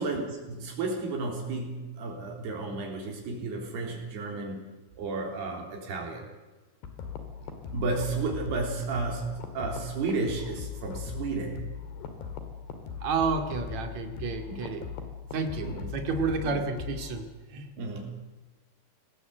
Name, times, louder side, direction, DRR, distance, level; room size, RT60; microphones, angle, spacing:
voice 1, 0.0-6.3 7.7-11.6 14.5-14.6 15.6-15.9 16.4-16.6 17.8-18.2, right 3 dB, 85° right, 1 dB, 5.7 m, -33 dB
sound 1, 6.8-17.2, left 7 dB, 85° left, 4.3 m, -39 dB
voice 2, 13.0-14.9 15.3-17.7, right 4 dB, 50° right, 4 dB, 3.4 m, -31 dB
24.5 x 18.5 x 8.1 m, 1.2 s
omnidirectional pair, 4.5 m